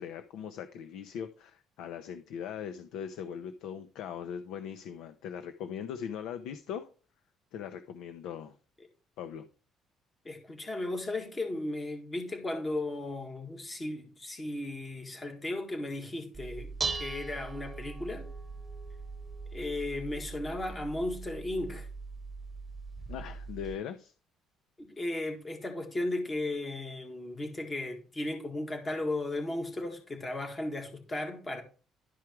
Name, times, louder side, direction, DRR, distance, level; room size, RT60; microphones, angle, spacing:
voice 1, 0.0-6.9 7.5-8.6 9.2-9.5 23.1-24.1, left 8 dB, 85° left, 0.8 m, -40 dB
voice 2, 10.3-16.7 17.0-18.2 19.5-21.9 24.8-31.6, left 2 dB, 20° left, 1.9 m, -35 dB
Dishes pots and pans, 16.3-23.7, right 4 dB, 15° right, 1.2 m, -40 dB
12.0 x 4.9 x 4.6 m
cardioid pair, 165°, 0 cm